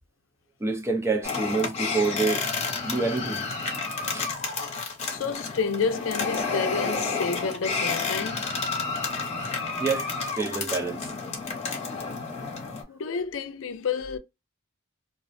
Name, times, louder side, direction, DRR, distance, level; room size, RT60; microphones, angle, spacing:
voice 1, 0.6-2.5 2.8-4.3 9.8-11.5, right 4 dB, 15° right, 0.4 m, -28 dB
sound 1, 1.2-12.8, left 4 dB, 30° left, 0.7 m, -30 dB
voice 2, 5.1-8.6 12.9-14.2, left 5 dB, 70° left, 0.4 m, -30 dB
2.4 x 2.0 x 2.5 m
head